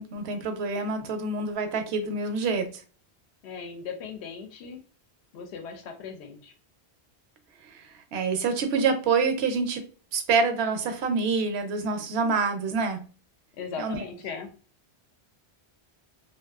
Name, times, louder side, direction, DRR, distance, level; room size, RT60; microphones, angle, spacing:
voice 1, 0.0-2.8 8.1-9.8 10.1-13.1 13.8-14.0, right 4 dB, 75° right, 7 dB, 0.8 m, -26 dB
voice 2, 3.4-4.8 5.3-6.5 13.5-14.5, left 6 dB, 80° left, 5 dB, 0.8 m, -38 dB
2.5 x 2.2 x 2.3 m, 0.38 s
omnidirectional pair, 1.1 m